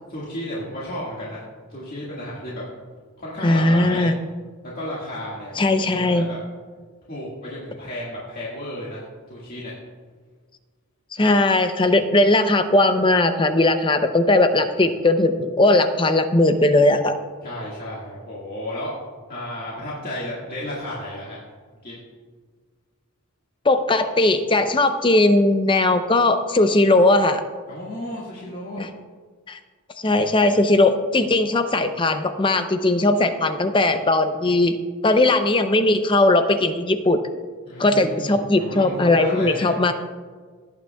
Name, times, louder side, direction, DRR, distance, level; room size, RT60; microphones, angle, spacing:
voice 1, 0.1-1.4 1.7-2.6 3.2-4.1 4.7-6.4 7.1-9.0 9.3-9.7 17.4-18.9 19.3-21.4 21.8-22.0 27.7-28.8 37.7-39.7, left 1 dB, 40° left, -7 dB, 1.8 m, -33 dB
voice 2, 3.4-4.2 5.6-6.3 11.1-17.2 23.6-27.4 28.8-28.9 29.5-29.6 30.0-34.7 35.0-37.2 37.8-39.9, left 2 dB, 20° left, 9 dB, 0.5 m, -18 dB
17.5 x 8.7 x 2.3 m, 1.6 s
head